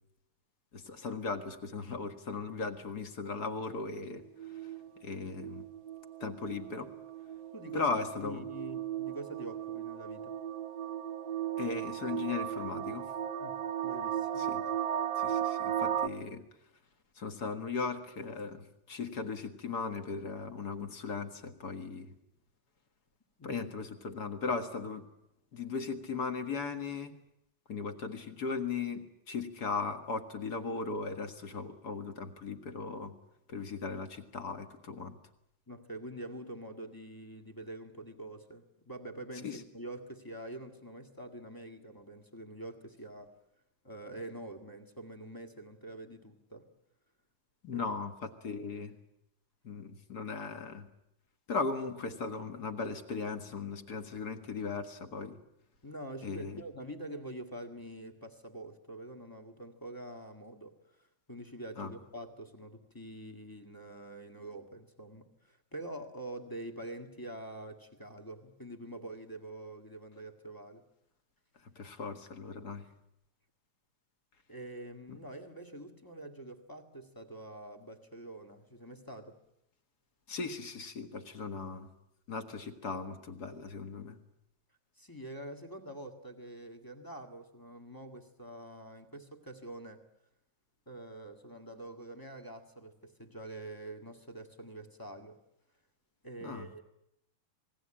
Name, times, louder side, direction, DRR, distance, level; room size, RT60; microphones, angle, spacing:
voice 1, 0.7-4.2 4.6-4.7 5.0-5.6 6.2-6.9 7.7-8.4 11.6-13.1 14.4-14.6 15.2-16.4 17.1-22.1 23.4-25.1 25.5-27.1 27.7-33.1 33.5-35.2 39.4-39.6 47.6-48.9 49.6-50.9 51.5-55.4 56.2-56.6 61.8-61.9 71.7-72.9 75.1-75.2 80.3-81.9 82.3-84.2 96.4-96.8, left 4 dB, 40° left, 8 dB, 1.5 m, -37 dB
sound 1, 4.1-16.1, right 10 dB, 80° right, 1.0 m, -36 dB
voice 2, 7.5-7.9 8.2-10.3 13.4-14.5 23.4-23.6 35.7-43.3 43.8-46.7 47.7-47.9 55.8-61.0 61.3-70.8 74.5-79.4 84.9-90.0 90.8-95.4 96.2-96.8, right 1 dB, 15° left, 5 dB, 0.8 m, -45 dB
27.5 x 20.0 x 8.9 m, 0.81 s
omnidirectional pair, 3.7 m